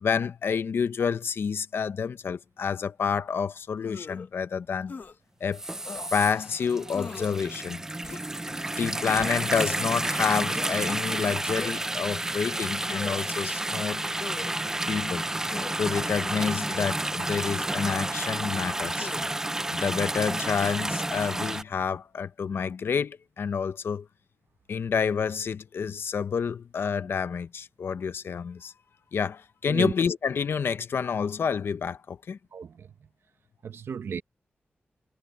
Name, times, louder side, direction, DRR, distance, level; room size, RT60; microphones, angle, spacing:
voice 1, 0.0-5.0 5.4-5.6 6.1-7.8 8.8-14.0 14.9-15.3 15.8-19.1 19.7-24.1 24.7-28.7 29.1-32.4, left 6 dB, 75° left, 0.7 m, -29 dB
sound 1, 3.8-4.3 4.9-5.1 5.8-6.1 6.9-7.4 8.0-8.4 9.2-9.6 10.5-10.7 11.6-12.0 12.8-13.4 14.2-14.5 15.5-15.8 16.7-16.9 17.8-18.1 19.0-19.3, left 4 dB, 55° left, 1.2 m, -40 dB
sound 2, 5.5-21.6, right 1 dB, 15° right, 0.3 m, -30 dB
voice 2, 32.5-32.9 33.6-34.2, right 6 dB, 85° right, 0.9 m, -33 dB
wide cardioid pair, 155°, 4 cm